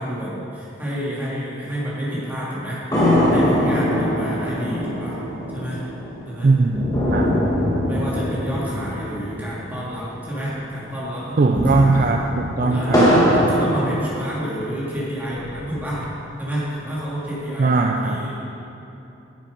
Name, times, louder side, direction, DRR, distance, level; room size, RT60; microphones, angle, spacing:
voice 1, 0.0-5.2 5.5-5.8 6.3-6.5 7.8-12.0 12.7-16.0 16.4-18.5, equal, 10° right, -8 dB, 2.2 m, -29 dB
sound 1, 2.9-10.5 10.8-10.9 11.3-14.7 15.2-16.2, equal, 20° left, 1.6 m, -22 dB
voice 2, 6.4-7.3 11.4-13.1 17.6-18.2, right 3 dB, 45° right, 3 dB, 0.4 m, -19 dB
9.2 x 7.3 x 5.2 m, 2.8 s
head